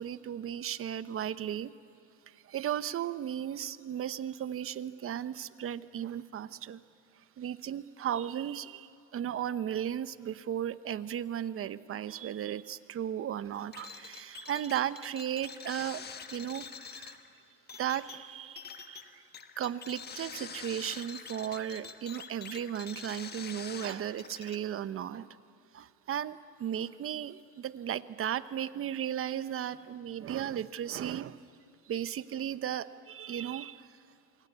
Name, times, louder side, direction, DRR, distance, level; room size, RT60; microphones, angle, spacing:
voice 1, 0.0-1.7 2.3-6.8 7.4-16.0 16.3-17.2 17.8-19.2 19.6-25.4 25.7-31.4 31.9-34.0, right 10 dB, 40° right, 14 dB, 0.9 m, -35 dB
sound 1, 13.7-24.6, left 6 dB, 30° left, 1.4 m, -46 dB
27.0 x 23.5 x 8.2 m, 2.6 s
cardioid pair, 115°, 35 cm